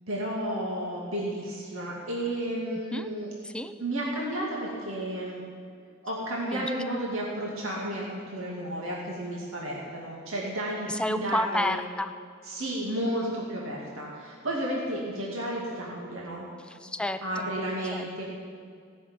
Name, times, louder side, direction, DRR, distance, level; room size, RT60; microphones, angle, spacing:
voice 1, 0.1-3.3 3.8-5.4 6.0-11.8 12.4-16.5 17.2-18.3, right 1 dB, 70° right, -4 dB, 2.4 m, -32 dB
voice 2, 3.4-3.8 6.5-6.7 10.9-12.1 16.7-17.5 17.9-18.1, left 1 dB, 5° left, 9 dB, 0.5 m, -30 dB
17.0 x 7.0 x 8.9 m, 2.2 s
head